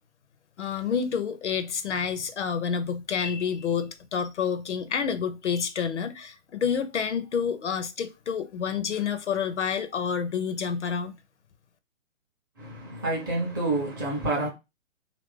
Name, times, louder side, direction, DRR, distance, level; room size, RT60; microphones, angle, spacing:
voice 1, 0.6-11.2, left 7 dB, 60° left, 0.6 m, -29 dB
voice 2, 12.6-14.5, right 2 dB, 15° right, 0.6 m, -28 dB
2.9 x 2.5 x 3.2 m
figure-of-eight pair, 135°, 40 cm